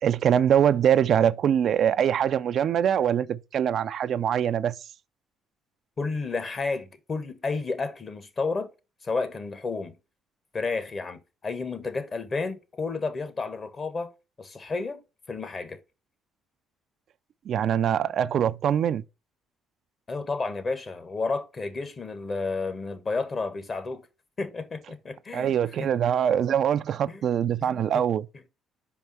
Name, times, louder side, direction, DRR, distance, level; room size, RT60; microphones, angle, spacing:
voice 1, 0.0-4.8 17.5-19.0 25.3-28.3, right 9 dB, 60° right, 0.4 m, -23 dB
voice 2, 6.0-8.7 9.0-9.9 10.5-14.1 14.4-15.0 15.3-15.8 20.1-24.0 24.4-25.9 27.1-27.2 27.6-27.8, left 4 dB, 40° left, 1.3 m, -31 dB
5.3 x 4.7 x 5.4 m
supercardioid pair, 80°, 0 cm